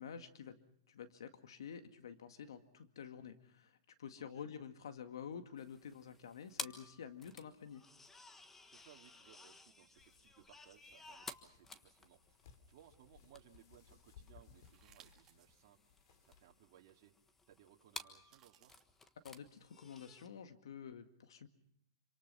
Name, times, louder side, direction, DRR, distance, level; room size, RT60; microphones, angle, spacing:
voice 1, 0.0-7.8 19.2-21.5, left 7 dB, 80° left, 8 dB, 2.0 m, -50 dB
sound 1, 5.6-20.3, left 3 dB, 10° left, 1.4 m, -54 dB
voice 2, 8.6-17.1 17.5-18.8, right 11 dB, 50° right, 0 dB, 2.5 m, -65 dB
sound 2, 10.0-16.5, left 7 dB, 60° left, 3.5 m, -64 dB
sound 3, 14.6-15.5 16.1-16.2 18.1-18.8, right 9 dB, 25° right, 2.2 m, -64 dB
27.0 x 26.0 x 5.6 m, 0.72 s
hypercardioid pair, 145°, 2 cm